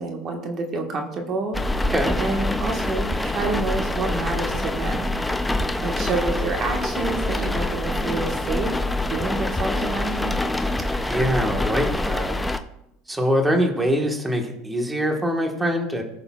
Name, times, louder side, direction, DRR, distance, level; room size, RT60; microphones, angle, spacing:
voice 1, 0.0-5.5 5.8-8.8 9.1-10.4, right 3 dB, 40° right, 3 dB, 1.4 m, -29 dB
sound 1, 1.5-12.6, left 1 dB, 5° left, 0.5 m, -25 dB
voice 2, 11.1-12.4 13.1-16.0, equal, 10° right, 2 dB, 1.4 m, -23 dB
19.5 x 6.7 x 2.4 m, 0.83 s
supercardioid pair, 125°, 0 cm